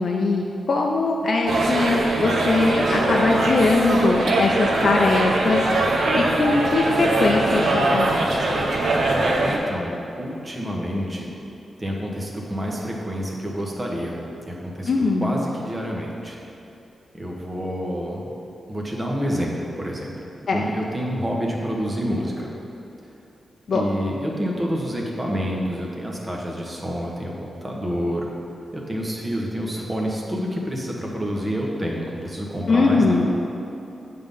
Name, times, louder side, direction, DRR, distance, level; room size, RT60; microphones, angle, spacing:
voice 1, 0.0-8.2 14.9-15.4 20.5-20.7 23.7-23.8 32.7-33.3, left 3 dB, 60° left, -1 dB, 0.5 m, -21 dB
sound 1, 1.5-9.6, right 2 dB, 75° right, 0.9 m, -22 dB
voice 2, 9.4-11.3 11.8-14.9 15.2-16.4 17.1-18.3 18.7-20.1 20.5-22.5 23.7-28.3 28.7-33.3, equal, 20° right, -2 dB, 1.2 m, -28 dB
9.0 x 3.8 x 5.4 m, 2.8 s
wide cardioid pair, 105°, 0 cm